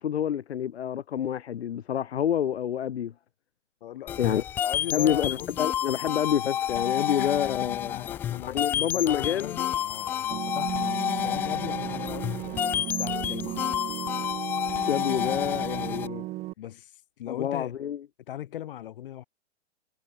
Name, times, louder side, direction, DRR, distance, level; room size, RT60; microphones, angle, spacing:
voice 1, 0.0-3.1 4.2-4.4 4.9-7.9 8.5-9.6 14.9-16.3 17.3-18.0, left 9 dB, 65° left, 4.8 m, -28 dB
voice 2, 3.8-5.5 5.9-6.0 7.2-7.3 7.6-13.9 16.6-17.7 18.3-19.2, left 12 dB, 50° left, 6.8 m, -40 dB
sound 1, 4.1-16.1, left 10 dB, 5° left, 0.5 m, -30 dB
sound 2, 10.3-16.5, right 18 dB, 20° right, 4.5 m, -35 dB
hypercardioid pair, 165°, 35 cm